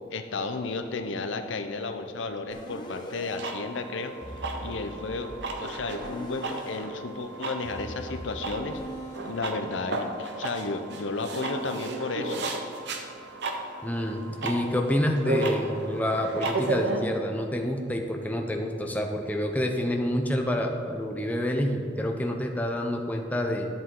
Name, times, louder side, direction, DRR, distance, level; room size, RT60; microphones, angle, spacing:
voice 1, 0.1-4.2 4.6-5.3 5.6-8.8 9.2-12.5, left 3 dB, 80° left, 7 dB, 0.7 m, -33 dB
sound 1, 2.5-3.4 4.2-6.8 7.6-9.3, equal, 25° left, 1.1 m, -41 dB
sound 2, 3.3-17.0, right 2 dB, 65° right, 0.9 m, -34 dB
voice 2, 13.8-23.7, left 1 dB, 10° left, 3 dB, 0.6 m, -28 dB
11.0 x 7.6 x 3.8 m, 2.5 s
head